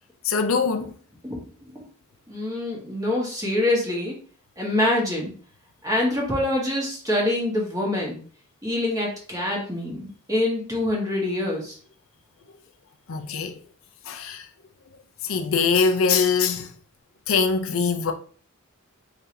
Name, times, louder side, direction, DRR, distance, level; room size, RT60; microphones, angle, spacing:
voice 1, 0.2-0.9 13.1-13.6 14.1-14.5 15.2-16.7 17.3-18.1, left 5 dB, 70° left, 0.6 m, -22 dB
voice 2, 1.3-1.8 2.3-4.1 4.6-5.3 5.8-8.2 8.6-11.8, left 1 dB, 15° right, 1.5 m, -25 dB
4.5 x 3.8 x 2.7 m
head